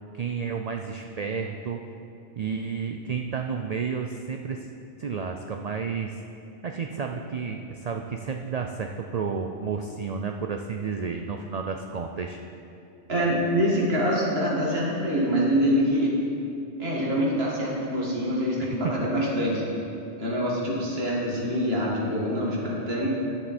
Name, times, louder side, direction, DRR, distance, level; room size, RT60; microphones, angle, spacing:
voice 1, 0.1-1.8 2.4-4.7 5.0-6.2 6.6-12.4 18.6-19.1, right 5 dB, 85° right, 4 dB, 0.3 m, -31 dB
voice 2, 13.1-16.2 16.8-19.7 20.2-23.1, equal, 55° right, -5 dB, 2.1 m, -25 dB
11.0 x 7.3 x 4.2 m, 2.6 s
omnidirectional pair, 1.2 m